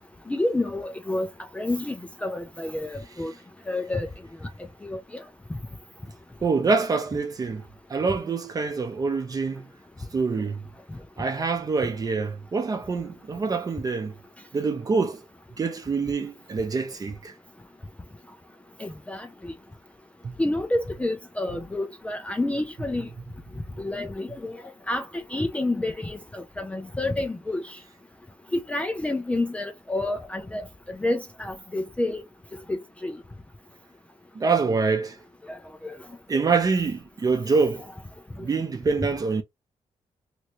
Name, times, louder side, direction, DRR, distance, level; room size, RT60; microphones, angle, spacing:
voice 1, 0.3-1.3 1.5-3.3 3.7-4.1 4.8-5.0 18.8-19.3 20.4-23.1 23.8-24.6 24.9-25.0 25.3-27.6 28.5-30.6 31.0-32.2 32.7-33.2 35.5-35.6 35.8-35.9 36.3-36.4, left 2 dB, 10° left, 0.4 m, -29 dB
voice 2, 6.4-7.6 7.9-9.7 10.1-10.6 11.2-14.1 14.5-15.2 15.6-17.3 20.2-20.3 34.3-35.2 36.3-37.9 38.4-39.4, right 4 dB, 30° right, 0.7 m, -25 dB
3.0 x 2.6 x 2.9 m
wide cardioid pair, 175°, 12 cm